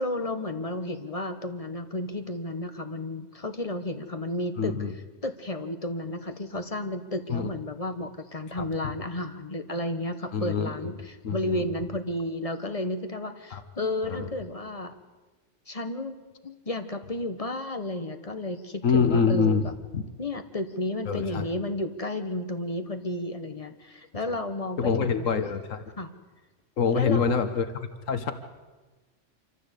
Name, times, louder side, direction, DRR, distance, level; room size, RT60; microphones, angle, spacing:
voice 1, 0.0-4.7 5.2-14.9 15.7-19.7 20.2-25.3 26.0-26.1 26.9-27.5, left 1 dB, 30° left, 8 dB, 1.4 m, -32 dB
voice 2, 4.6-4.9 7.3-7.5 8.6-8.7 10.3-10.9 11.2-11.6 13.5-13.6 14.0-14.3 18.8-19.7 19.9-20.0 21.1-21.5 24.8-25.8 26.8-28.3, left 6 dB, 90° left, 10 dB, 1.6 m, -25 dB
25.5 x 14.5 x 8.3 m, 1.2 s
omnidirectional pair, 1.3 m